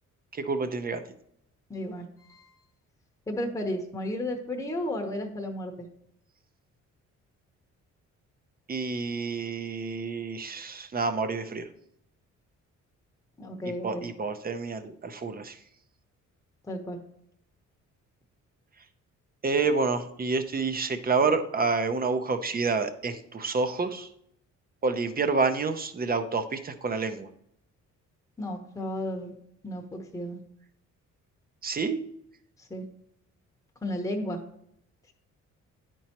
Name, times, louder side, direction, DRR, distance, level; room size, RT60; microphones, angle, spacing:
voice 1, 0.3-1.0 8.7-11.7 13.8-15.6 19.4-24.1 24.8-27.3 31.6-32.0, right 4 dB, 30° right, 10 dB, 0.6 m, -28 dB
voice 2, 1.7-2.5 3.3-5.9 13.4-14.1 16.7-17.0 28.4-29.3 29.6-30.4 32.6-32.8 33.8-34.4, left 1 dB, 10° left, 2 dB, 0.9 m, -33 dB
9.8 x 4.5 x 2.9 m, 0.73 s
cardioid pair, 90°, 30 cm